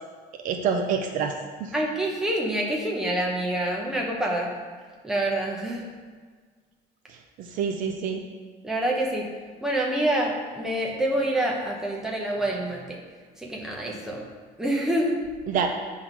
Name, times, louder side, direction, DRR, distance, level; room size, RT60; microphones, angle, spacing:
voice 1, 0.4-1.3 1.6-1.7 7.4-8.2 15.5-15.7, right 6 dB, 45° right, 4 dB, 0.6 m, -26 dB
voice 2, 1.7-4.5 5.0-5.9 8.6-9.3 9.6-13.0 13.4-14.3 14.6-15.2, right 1 dB, 5° right, -2 dB, 0.8 m, -26 dB
8.4 x 3.8 x 6.0 m, 1.5 s
cardioid pair, 170°, 18 cm